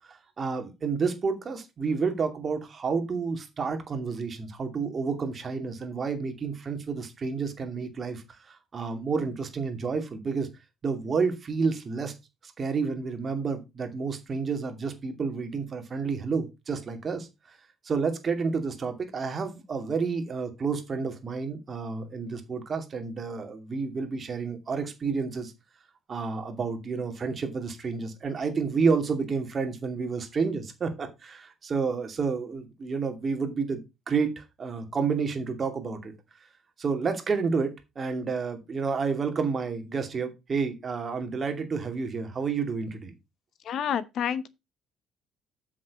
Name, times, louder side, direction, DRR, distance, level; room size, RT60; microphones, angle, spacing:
voice 1, 0.1-10.5 10.8-12.1 12.4-17.6 17.8-25.5 26.1-33.8 34.1-36.1 36.8-43.1, right 5 dB, 35° right, 2.5 m, -30 dB
voice 2, 43.6-44.5, left 8 dB, 55° left, 1.0 m, -29 dB
7.7 x 6.3 x 5.2 m
cardioid pair, 120°, 0 cm